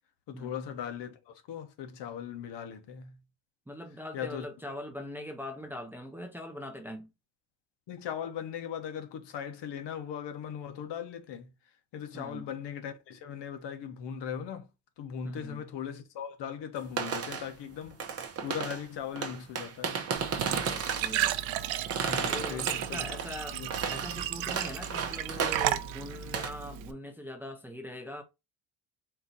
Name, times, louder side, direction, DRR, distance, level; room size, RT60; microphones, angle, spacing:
voice 1, 0.3-3.2 4.1-4.5 7.9-11.5 11.9-14.7 15.0-20.1 22.0-23.1 23.5-24.0, left 8 dB, 65° left, 1.0 m, -39 dB
voice 2, 3.7-7.1 12.1-12.5 15.2-15.6 20.6-21.4 22.3-23.6 23.9-28.2, left 1 dB, 5° right, 0.5 m, -42 dB
sound 1, 16.9-17.5 17.8-18.9 19.2-21.2 21.9-23.4 23.7-25.9 26.2-26.5, right 6 dB, 35° right, 0.8 m, -34 dB
Glass / Trickle dribble / Fill (with liquid), 20.2-26.9, right 12 dB, 85° right, 0.6 m, -34 dB
4.4 x 2.7 x 3.9 m
cardioid pair, 150°, 45 cm